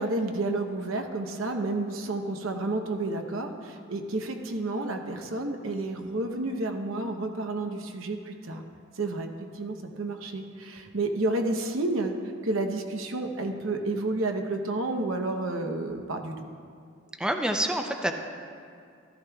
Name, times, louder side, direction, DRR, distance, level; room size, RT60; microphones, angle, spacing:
voice 1, 0.0-8.6 9.0-9.3 9.5-12.1 12.4-16.5, right 2 dB, 80° right, 5 dB, 0.9 m, -30 dB
voice 2, 17.2-18.1, equal, 5° right, 4 dB, 0.5 m, -27 dB
14.0 x 13.5 x 2.3 m, 2.3 s
head